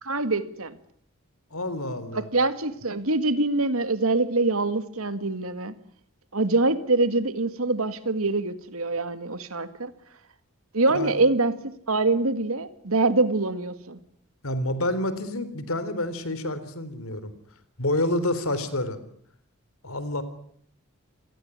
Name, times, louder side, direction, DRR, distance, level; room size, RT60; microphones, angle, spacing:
voice 1, 0.0-0.8 2.1-5.7 6.3-9.9 10.7-11.5 11.9-14.0, right 2 dB, 75° right, 12 dB, 2.0 m, -24 dB
voice 2, 1.5-2.3 10.9-11.1 14.4-17.3 17.8-19.0 19.8-20.2, left 1 dB, 75° left, 14 dB, 3.7 m, -28 dB
28.5 x 18.5 x 9.6 m, 0.65 s
head